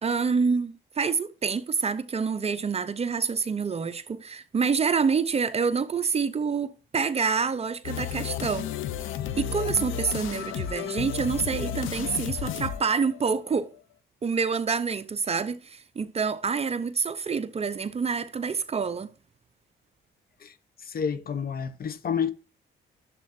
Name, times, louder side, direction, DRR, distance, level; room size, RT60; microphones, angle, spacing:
voice 1, 0.0-8.7 9.4-13.7 14.2-19.1, right 5 dB, 30° right, 0.7 m, -27 dB
sound 1, 7.8-13.6, left 9 dB, 80° left, 0.7 m, -33 dB
voice 2, 20.4-22.3, left 7 dB, 50° left, 0.9 m, -30 dB
12.0 x 7.4 x 2.6 m
cardioid pair, 90°, 20 cm